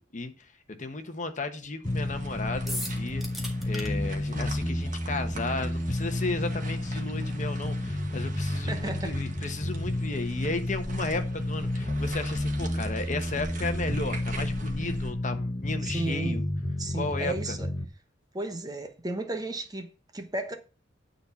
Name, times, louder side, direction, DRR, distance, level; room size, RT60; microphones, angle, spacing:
voice 1, 0.1-3.2 3.7-16.4 16.9-17.6, left 3 dB, 40° left, 1.2 m, -34 dB
sound 1, 1.8-17.9, left 1 dB, 20° left, 0.7 m, -31 dB
sound 2, 1.8-15.1, right 1 dB, 45° right, 1.7 m, -43 dB
sound 3, 2.7-3.9, equal, ahead, 1.9 m, -36 dB
voice 2, 8.7-9.1 15.8-16.4 16.8-17.7 18.3-20.6, right 2 dB, 20° right, 1.0 m, -34 dB
9.8 x 4.2 x 7.1 m
head